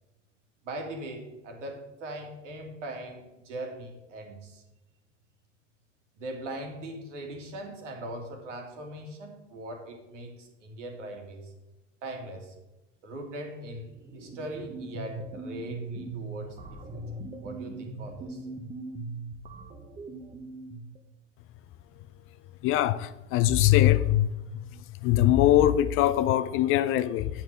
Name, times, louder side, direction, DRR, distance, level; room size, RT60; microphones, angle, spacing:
voice 1, 0.6-4.6 6.2-11.5 12.0-12.5 13.0-17.0 17.4-18.5, right 1 dB, 80° right, 2.0 m, -40 dB
sound 1, 13.9-21.0, right 2 dB, 20° right, 1.0 m, -40 dB
voice 2, 22.6-24.3 25.0-27.4, left 13 dB, 35° left, 0.4 m, -22 dB
8.5 x 4.7 x 6.6 m
hypercardioid pair, 90°, 37 cm